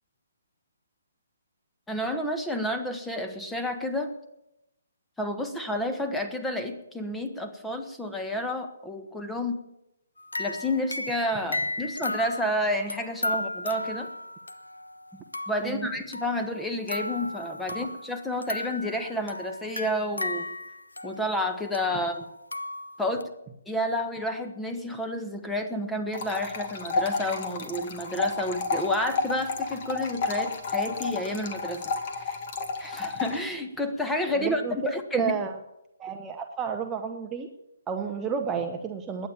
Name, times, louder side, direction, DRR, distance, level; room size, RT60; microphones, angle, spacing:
voice 1, 1.9-4.1 5.2-9.6 10.4-14.1 15.5-20.5 21.0-22.2 23.0-23.3 23.7-31.9 32.2-32.4 32.8-35.4, left 1 dB, 5° left, 6 dB, 1.4 m, -30 dB
sound 1, 10.2-15.7 16.1-18.1 18.4-23.2, left 2 dB, 75° left, 1.0 m, -35 dB
sound 2, 26.1-33.4, left 4 dB, 40° left, 2.0 m, -31 dB
voice 2, 34.4-34.8 35.1-35.6 36.0-37.5 37.9-39.3, right 6 dB, 15° right, 4 dB, 1.0 m, -31 dB
21.0 x 9.3 x 7.3 m, 0.88 s
figure-of-eight pair, 135°, 0 cm